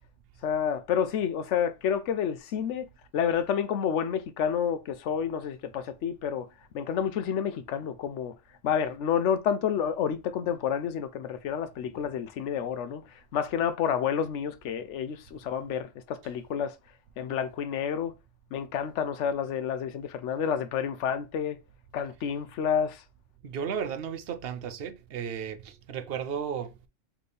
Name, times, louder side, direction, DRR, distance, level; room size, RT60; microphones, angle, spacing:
voice 1, 0.4-6.5 6.7-8.3 8.6-13.0 13.3-16.7 17.2-18.1 18.5-21.6 21.9-23.0, left 8 dB, 75° left, 0.9 m, -29 dB
voice 2, 23.4-26.7, right 7 dB, 60° right, 0.7 m, -34 dB
4.2 x 3.3 x 3.3 m
omnidirectional pair, 1.3 m